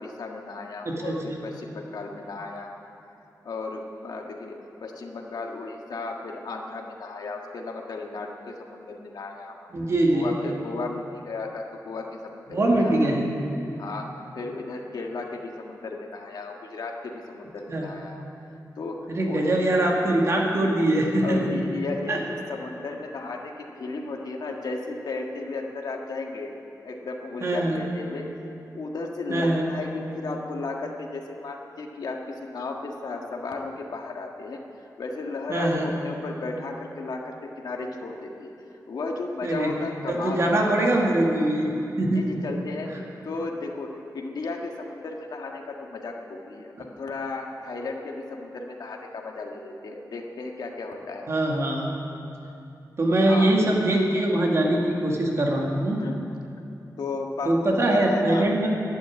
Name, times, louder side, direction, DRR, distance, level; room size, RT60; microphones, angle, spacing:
voice 1, 0.0-2.9 3.4-9.7 10.1-13.2 13.8-18.3 18.7-19.8 21.2-22.2 22.5-26.5 26.8-28.3 28.7-34.6 35.0-38.5 38.9-41.1 42.1-42.9 43.2-51.3 53.2-53.5 56.0-56.3 57.0-58.5, left 3 dB, 80° left, 1 dB, 1.6 m, -34 dB
voice 2, 0.9-1.4 9.7-10.3 12.5-13.3 17.7-17.9 19.1-21.5 22.1-22.2 27.4-27.8 29.3-29.7 35.5-35.9 39.4-39.8 40.1-42.2 51.3-51.9 53.0-56.0 57.5-58.7, right 1 dB, 45° right, -1 dB, 2.1 m, -23 dB
11.5 x 11.5 x 9.4 m, 2.7 s
wide cardioid pair, 165°, 7 cm